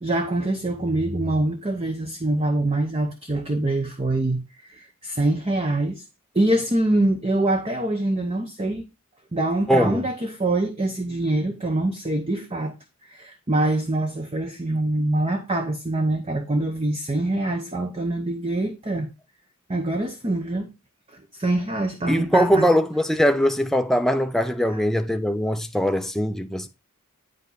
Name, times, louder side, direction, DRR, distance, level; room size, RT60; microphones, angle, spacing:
voice 1, 0.0-6.0 6.3-8.8 9.3-12.7 13.0-19.1 19.7-20.7 21.1-22.7 24.7-24.8, right 1 dB, 25° right, 0.8 m, -24 dB
voice 2, 9.7-10.0 22.1-26.7, equal, ahead, 0.5 m, -21 dB
9.2 x 5.2 x 4.0 m
head